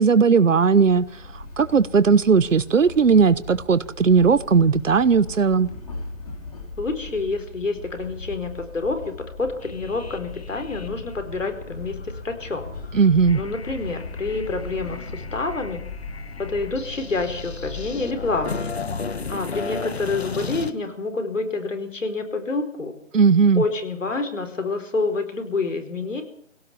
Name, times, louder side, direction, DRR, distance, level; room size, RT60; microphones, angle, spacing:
voice 1, 0.0-5.7 12.9-13.4 23.1-23.6, right 5 dB, 80° right, 1.2 m, -17 dB
sound 1, 0.9-19.3, left 3 dB, 30° left, 3.7 m, -38 dB
voice 2, 6.8-12.7 13.3-15.8 16.4-18.7 19.3-22.9 23.5-26.2, left 3 dB, 75° left, 4.6 m, -28 dB
sound 2, 9.6-20.7, left 5 dB, 55° left, 1.5 m, -36 dB
21.0 x 17.5 x 7.2 m
hypercardioid pair, 180°, 38 cm